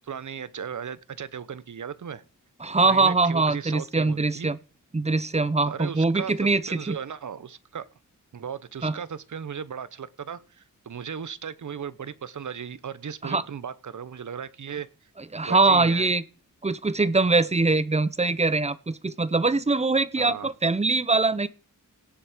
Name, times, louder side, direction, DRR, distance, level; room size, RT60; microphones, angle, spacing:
voice 1, 0.0-2.2 2.8-4.5 5.7-6.3 6.7-7.9 8.3-14.9 15.5-16.1 20.2-20.5, right 7 dB, 65° right, 16 dB, 1.0 m, -36 dB
voice 2, 2.6-4.6 4.9-7.0 8.8-8.9 13.2-13.4 15.3-16.2 16.6-21.5, right 3 dB, 20° right, 16 dB, 0.8 m, -23 dB
17.5 x 7.5 x 5.1 m, 0.36 s
wide cardioid pair, 115°, 32 cm